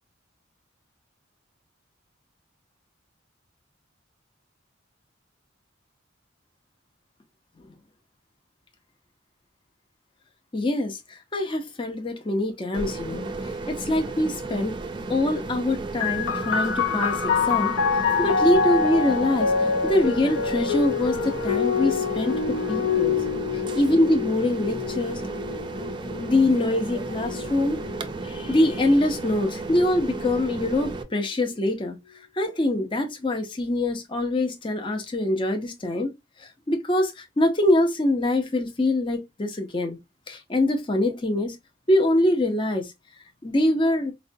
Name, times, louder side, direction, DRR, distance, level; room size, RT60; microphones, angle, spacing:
voice 1, 10.5-14.8 15.1-17.7 18.2-22.4 22.7-23.2 23.5-25.2 26.1-27.8 28.2-32.0 32.3-36.1 36.4-40.0 40.3-41.6 41.9-42.9 43.4-44.1, left 1 dB, 25° left, 0.5 m, -24 dB
sound 1, 12.7-31.0, right 3 dB, 25° right, 0.4 m, -34 dB
sound 2, 16.0-29.2 30.1-30.9, left 5 dB, 85° left, 0.5 m, -27 dB
4.7 x 2.2 x 2.6 m
head